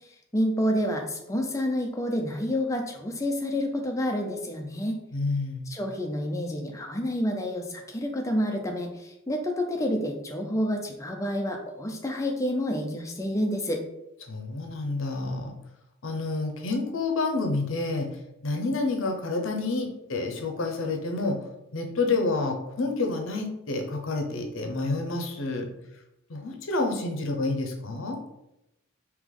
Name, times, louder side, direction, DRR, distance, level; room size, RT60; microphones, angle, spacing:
voice 1, 0.3-5.0 5.7-13.8, equal, 15° left, 2 dB, 0.5 m, -29 dB
voice 2, 5.1-5.6 14.3-15.5 16.0-18.1 18.4-21.4 21.7-25.7 26.3-28.2, left 3 dB, 65° left, 3 dB, 0.7 m, -29 dB
3.3 x 3.0 x 3.7 m, 0.87 s
head